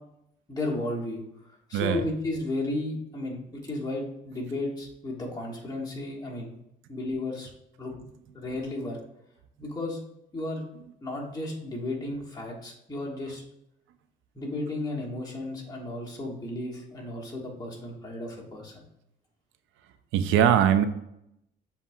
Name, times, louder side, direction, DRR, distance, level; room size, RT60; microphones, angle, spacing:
voice 1, 0.5-1.2 1.5-6.5 6.9-7.5 7.8-7.9 8.3-9.0 9.6-10.0 10.3-10.6 11.0-13.4 14.3-18.8, left 2 dB, 20° left, -3 dB, 1.4 m, -33 dB
voice 2, 1.7-2.0 20.1-20.8, right 9 dB, 85° right, 10 dB, 0.4 m, -21 dB
7.1 x 2.7 x 2.2 m, 0.79 s
cardioid pair, 90°, 20 cm